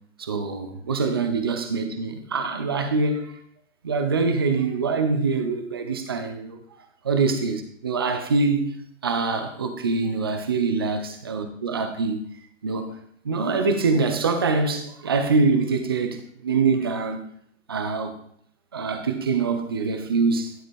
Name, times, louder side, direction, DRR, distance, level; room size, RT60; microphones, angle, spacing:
voice 1, 0.2-3.3 3.8-6.6 7.0-8.7 9.0-12.2 12.6-13.0 13.2-17.3 17.7-18.1 18.7-20.5, right 4 dB, 20° right, 0.4 m, -24 dB
11.0 x 5.0 x 4.3 m
figure-of-eight pair, 130°, 39 cm